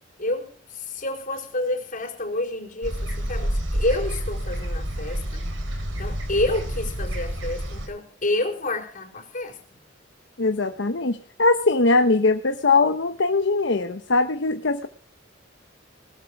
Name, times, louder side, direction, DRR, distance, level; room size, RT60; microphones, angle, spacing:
voice 1, 0.2-5.4 6.0-9.8, left 2 dB, 45° left, 4 dB, 4.5 m, -29 dB
sound 1, 2.8-7.9, equal, 80° right, 4.2 m, -29 dB
voice 2, 10.4-14.9, left 3 dB, 65° left, 7 dB, 1.1 m, -21 dB
19.5 x 13.0 x 4.8 m, 0.42 s
head